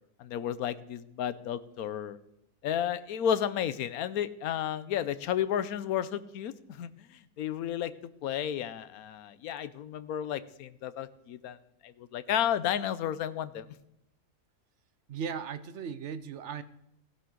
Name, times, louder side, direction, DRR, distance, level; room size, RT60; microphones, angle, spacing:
voice 1, 0.2-2.2 2.6-7.1 7.4-7.9 8.2-11.6 11.8-13.7, left 9 dB, 80° left, 14 dB, 1.2 m, -32 dB
voice 2, 15.1-16.6, right 7 dB, 60° right, 13 dB, 0.9 m, -37 dB
16.0 x 11.0 x 3.8 m, 0.80 s
omnidirectional pair, 1.5 m